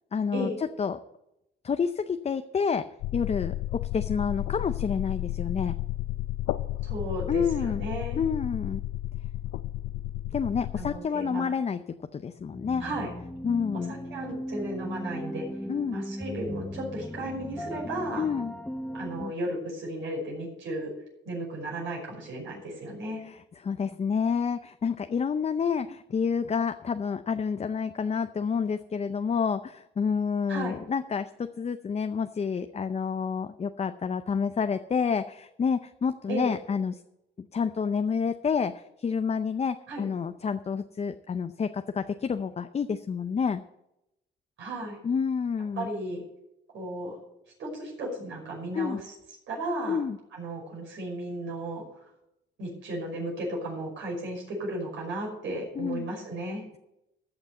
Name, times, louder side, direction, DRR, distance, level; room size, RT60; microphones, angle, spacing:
voice 1, 0.1-0.5 0.8-1.0 1.6-2.9 3.1-5.7 7.3-7.8 8.2-8.8 10.3-11.8 12.1-12.8 13.4-14.0 15.7-16.0 18.2-18.5 23.3-23.4 23.6-37.0 37.5-43.6 45.0-45.9 48.7-49.0 49.9-50.2 55.8-56.1, left 6 dB, 35° left, 9 dB, 0.6 m, -29 dB
sound 1, 3.0-11.0, left 15 dB, 90° left, 0.5 m, -32 dB
voice 2, 6.8-8.3 10.8-11.5 12.8-13.1 13.9-15.5 15.9-18.3 18.9-20.9 21.2-23.2 30.5-30.8 36.3-36.5 39.9-40.1 44.6-45.0 45.7-46.2 46.7-47.2 47.6-49.1 49.5-50.1 50.3-52.1 52.6-56.6, right 1 dB, 75° right, -3 dB, 5.5 m, -34 dB
sound 2, 12.5-19.3, equal, 5° left, 0.9 m, -37 dB
14.0 x 6.0 x 7.8 m, 0.87 s
cardioid pair, 90°, 20 cm